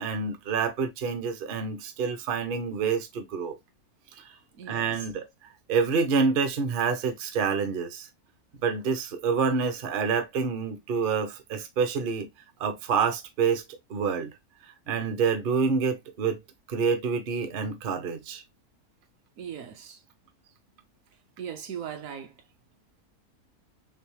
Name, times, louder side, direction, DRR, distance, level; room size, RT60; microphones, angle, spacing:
voice 1, 0.0-3.6 4.2-4.3 4.7-5.3 5.7-8.1 8.6-12.3 12.6-14.3 14.9-16.4 16.7-18.4, right 5 dB, 50° right, 0.7 m, -27 dB
voice 2, 4.6-4.9 19.4-20.0 21.4-22.3, right 8 dB, 70° right, 1.1 m, -38 dB
3.4 x 3.2 x 3.0 m
omnidirectional pair, 1.6 m